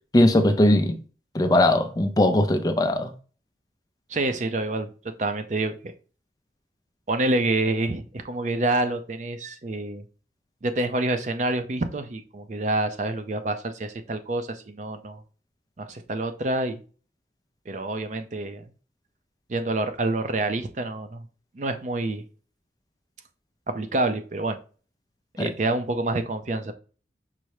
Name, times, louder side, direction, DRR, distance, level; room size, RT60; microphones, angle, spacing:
voice 1, 0.1-1.0 1.3-3.1 25.4-25.5, left 1 dB, 20° left, 0.4 m, -19 dB
voice 2, 4.1-5.9 7.1-10.0 10.6-15.2 15.8-16.8 17.7-18.7 19.5-21.3 21.6-22.2 23.7-24.6 25.4-26.7, right 2 dB, 40° right, 0.5 m, -27 dB
5.5 x 2.0 x 4.7 m
head